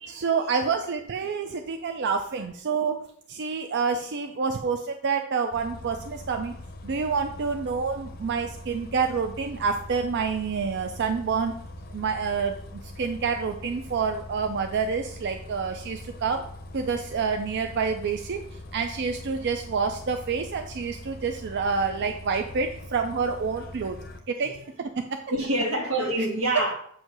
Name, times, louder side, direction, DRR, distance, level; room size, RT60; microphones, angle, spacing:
voice 1, 0.1-3.0 3.3-6.5 6.8-11.5 11.9-12.6 13.0-16.4 16.7-18.4 18.7-24.0 24.3-24.5 24.8-25.2, right 5 dB, 55° right, 0.4 m, -28 dB
voice 2, 1.2-1.6 24.4-24.5 25.3-26.7, right 1 dB, 90° right, 1.6 m, -27 dB
Bus, 5.5-24.2, left 1 dB, 45° left, 0.6 m, -42 dB
7.8 x 2.7 x 5.9 m
head